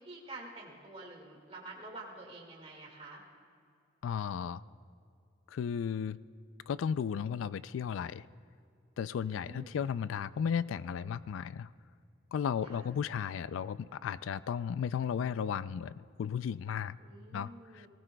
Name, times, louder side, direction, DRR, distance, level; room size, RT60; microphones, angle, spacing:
voice 1, 0.0-3.2 9.2-9.8 12.6-12.9 17.0-17.9, right 2 dB, 30° right, -1 dB, 2.0 m, -48 dB
voice 2, 4.0-4.6 5.5-6.2 6.7-8.3 9.0-11.7 12.3-17.0 17.3-17.9, left 7 dB, 90° left, 17 dB, 0.3 m, -34 dB
19.5 x 18.0 x 2.2 m, 2.4 s
head